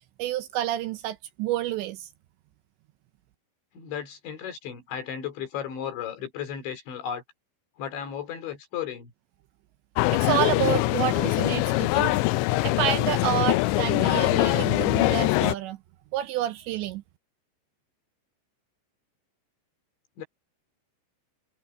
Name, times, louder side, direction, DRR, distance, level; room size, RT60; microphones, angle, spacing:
voice 1, 0.2-2.1 10.1-12.2 12.6-15.8 16.1-17.0, right 13 dB, 80° right, 2.8 m, -29 dB
voice 2, 3.7-7.2 7.8-9.1 20.2-20.3, left 8 dB, 65° left, 6.0 m, -34 dB
sound 1, 10.0-15.6, left 21 dB, 85° left, 2.6 m, -23 dB
omnidirectional pair, 5.6 m